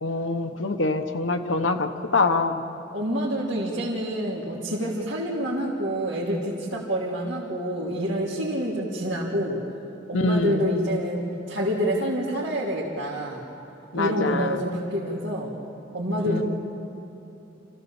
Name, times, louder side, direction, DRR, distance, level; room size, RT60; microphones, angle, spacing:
voice 1, 0.0-2.6 10.1-10.7 13.9-14.6 16.3-16.4, left 3 dB, 75° left, 7 dB, 1.2 m, -25 dB
voice 2, 2.9-9.6 10.1-13.4 13.9-15.5 15.9-16.4, equal, 70° right, -6 dB, 2.9 m, -27 dB
27.5 x 16.0 x 7.2 m, 2.9 s
head